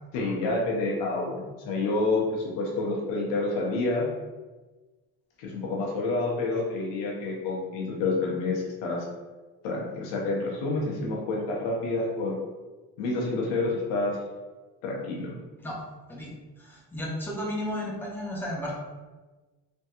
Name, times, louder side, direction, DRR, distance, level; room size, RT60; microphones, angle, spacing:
voice 1, 0.1-4.1 5.4-9.0 9.6-12.4 13.0-14.2 14.8-15.3, left 2 dB, 85° left, -2 dB, 0.9 m, -28 dB
voice 2, 16.6-18.8, left 1 dB, 5° left, -3 dB, 0.8 m, -33 dB
3.4 x 2.2 x 2.9 m, 1.2 s
supercardioid pair, 75°, 43 cm